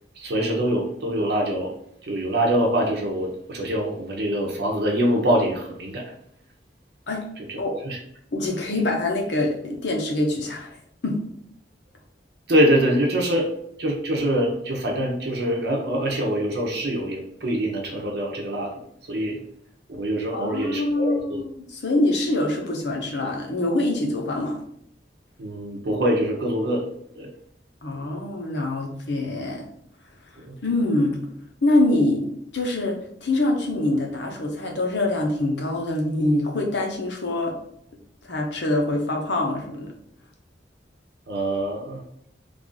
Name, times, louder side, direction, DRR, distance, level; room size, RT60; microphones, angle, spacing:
voice 1, 0.2-1.7 2.0-6.0 7.5-7.6 7.8-8.0 12.5-13.5 13.8-18.7 19.1-19.4 19.9-21.4 25.4-26.8 27.2-27.3 30.4-30.5 41.3-42.0, right 1 dB, 60° right, -1 dB, 0.7 m, -24 dB
voice 2, 8.3-10.7 11.0-11.2 20.3-24.6 27.8-29.6 30.6-31.2 31.6-32.3 32.5-33.0 33.2-37.5 38.2-39.9, left 2 dB, 75° left, 1 dB, 0.9 m, -24 dB
3.2 x 2.5 x 3.8 m, 0.71 s
head